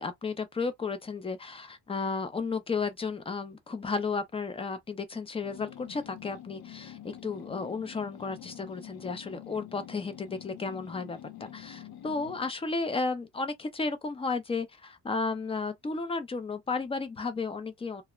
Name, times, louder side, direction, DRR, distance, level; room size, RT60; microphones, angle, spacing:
voice 1, 0.0-18.0, left 4 dB, 15° left, 0.3 m, -33 dB
sound 1, 5.4-12.5, left 11 dB, 60° left, 0.6 m, -47 dB
2.4 x 2.0 x 2.9 m
cardioid pair, 135°, 43 cm